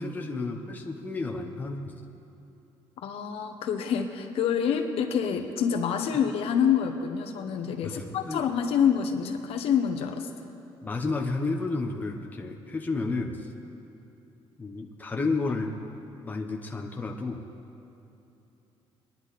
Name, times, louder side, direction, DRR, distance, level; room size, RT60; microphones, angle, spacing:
voice 1, 0.0-2.0 7.8-8.5 10.8-13.5 14.6-15.8 16.2-17.4, left 3 dB, 15° left, 1 dB, 1.0 m, -31 dB
voice 2, 3.0-10.3, left 7 dB, 70° left, 5 dB, 1.1 m, -27 dB
23.0 x 10.5 x 4.2 m, 2.9 s
cardioid pair, 130°, 10 cm